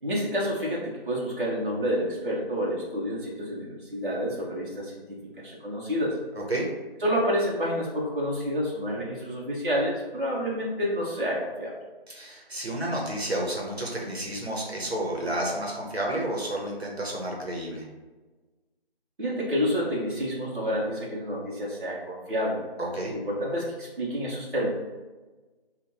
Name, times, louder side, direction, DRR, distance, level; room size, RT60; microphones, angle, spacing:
voice 1, 0.0-6.2 7.0-11.7 19.2-22.6 23.1-24.7, equal, 55° right, -5 dB, 1.0 m, -29 dB
voice 2, 12.1-17.8 22.8-23.1, right 1 dB, 80° right, -2 dB, 1.1 m, -31 dB
5.1 x 2.5 x 2.7 m, 1.3 s
figure-of-eight pair, 165°, 31 cm